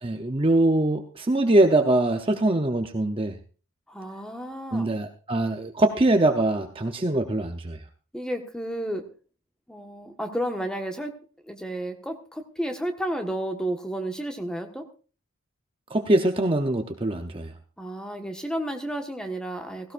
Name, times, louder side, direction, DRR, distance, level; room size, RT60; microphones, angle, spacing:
voice 1, 0.0-3.3 4.7-7.8 15.9-17.5, right 2 dB, 25° right, 5 dB, 0.7 m, -23 dB
voice 2, 3.9-4.9 8.1-9.0 9.7-11.1 11.5-14.8 17.8-19.9, right 1 dB, 5° left, 4 dB, 1.3 m, -32 dB
16.5 x 16.5 x 2.5 m, 0.36 s
head